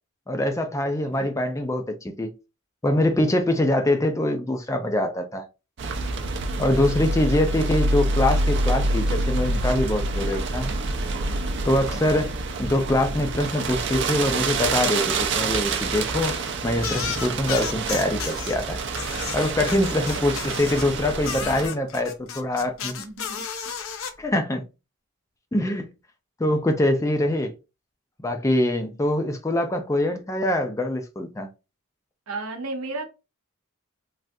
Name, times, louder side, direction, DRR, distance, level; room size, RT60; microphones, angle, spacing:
voice 1, 0.3-2.4 2.8-5.5 6.6-10.7 11.7-12.3 12.6-16.4 16.6-18.8 19.3-22.9 24.2-24.7 25.5-25.9 26.4-27.5 28.2-31.5, left 1 dB, 15° left, 0.3 m, -24 dB
sound 1, 5.8-21.7, right 2 dB, 55° right, 0.5 m, -27 dB
voice 2, 11.9-12.3 20.1-20.5 23.0-23.8 32.3-33.1, right 3 dB, 80° right, 0.8 m, -35 dB
sound 2, 16.8-18.6 18.9-20.9 21.2-24.1, left 7 dB, 70° left, 0.5 m, -33 dB
3.4 x 2.3 x 2.6 m
head